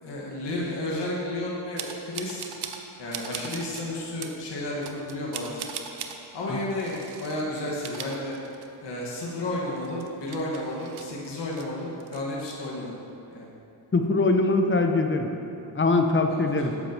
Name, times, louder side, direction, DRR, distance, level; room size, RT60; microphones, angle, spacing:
voice 1, 0.0-2.5 3.0-5.7 6.3-8.3 8.8-12.9 13.3-13.5 16.3-16.8, left 1 dB, 60° left, -4 dB, 1.7 m, -32 dB
sound 1, 1.8-2.8 3.1-3.8 4.2-4.4 4.8-6.2 6.8-7.4 7.7-8.9 9.2-9.3 9.8-11.7 12.0-12.5, right 7 dB, 50° right, 0.8 m, -39 dB
voice 2, 13.9-15.3 15.7-16.7, left 3 dB, 25° left, 4 dB, 0.8 m, -22 dB
9.8 x 7.3 x 3.0 m, 2.7 s
cardioid pair, 55°, 49 cm